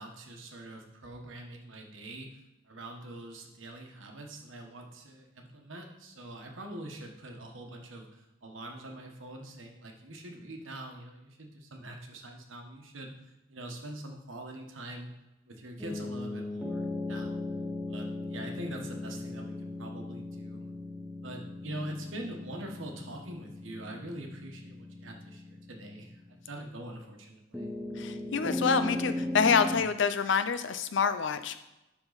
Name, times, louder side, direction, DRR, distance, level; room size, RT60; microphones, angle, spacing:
voice 1, 0.0-2.3 2.6-13.1 13.5-15.1 15.5-17.4 17.9-20.6 21.2-27.7, right 1 dB, 85° right, 2 dB, 1.3 m, -44 dB
sound 1, 15.8-26.5 27.5-29.8, left 2 dB, 5° right, 0.9 m, -37 dB
voice 2, 28.0-31.6, left 6 dB, 65° left, 11 dB, 0.5 m, -27 dB
11.5 x 3.8 x 4.1 m, 0.96 s
head